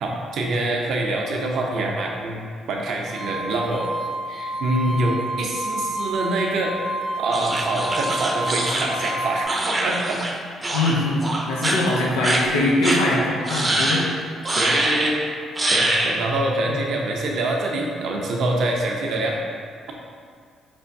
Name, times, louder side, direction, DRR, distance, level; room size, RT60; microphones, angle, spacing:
voice 1, 0.0-3.9 4.3-6.8 7.2-10.2 14.6-15.2 15.7-19.4, right 2 dB, 65° right, 0 dB, 0.6 m, -25 dB
sound 1, 3.0-9.4, right 1 dB, 20° left, 1.3 m, -30 dB
sound 2, 7.3-10.3 10.6-10.9 11.2-11.8 12.2-12.4 12.8-13.0 13.5-14.0 14.4-15.1 15.6-16.1, right 1 dB, 25° right, 0.6 m, -23 dB
voice 2, 10.7-11.2 11.5-14.1 16.7-16.8, left 2 dB, 90° left, -4 dB, 0.7 m, -22 dB
4.3 x 3.3 x 2.6 m, 2.1 s
hypercardioid pair, 55°, 0 cm